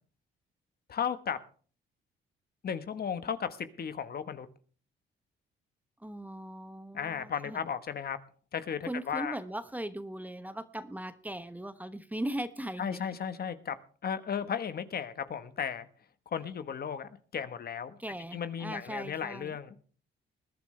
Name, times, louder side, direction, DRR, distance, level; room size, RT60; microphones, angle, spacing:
voice 1, 0.9-1.4 2.6-4.5 6.9-8.2 8.5-9.4 12.8-13.8 14.0-15.9 16.3-18.0 18.3-19.7, left 7 dB, 50° left, 11 dB, 1.3 m, -35 dB
voice 2, 6.0-7.6 8.9-13.2 18.0-19.6, right 1 dB, 10° right, 11 dB, 1.1 m, -39 dB
20.5 x 11.5 x 3.3 m, 0.41 s
cardioid pair, 90°, 20 cm